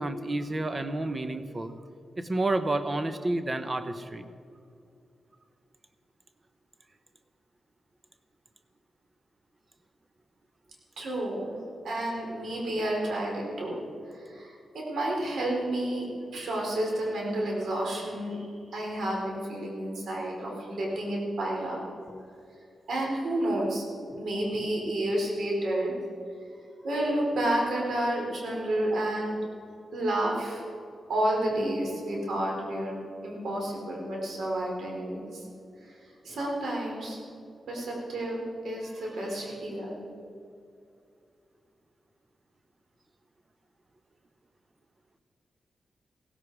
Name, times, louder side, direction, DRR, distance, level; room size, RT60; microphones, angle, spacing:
voice 1, 0.0-1.7 2.2-4.3, right 2 dB, 30° right, 10 dB, 1.1 m, -30 dB
voice 2, 11.0-11.6 11.8-21.8 22.9-23.8 24.1-25.9 26.8-29.4 29.9-30.7 31.1-35.5 35.8-37.2 37.7-40.0, right 1 dB, 80° right, -2 dB, 4.5 m, -30 dB
16.5 x 15.5 x 4.9 m, 2.5 s
cardioid pair, 85°, 0 cm